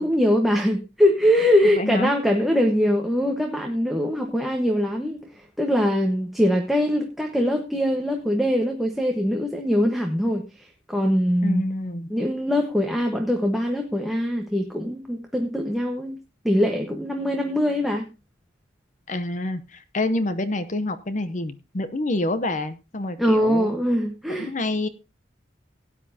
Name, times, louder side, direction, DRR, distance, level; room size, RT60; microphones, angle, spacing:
voice 1, 0.0-10.4 10.9-11.6 12.1-16.2 16.4-18.1 23.2-24.5, equal, ahead, 1 dB, 1.2 m, -22 dB
voice 2, 1.8-2.1 11.4-12.2 19.1-23.7 24.4-24.9, left 2 dB, 40° left, 11 dB, 0.7 m, -27 dB
17.5 x 10.0 x 2.8 m, 0.27 s
head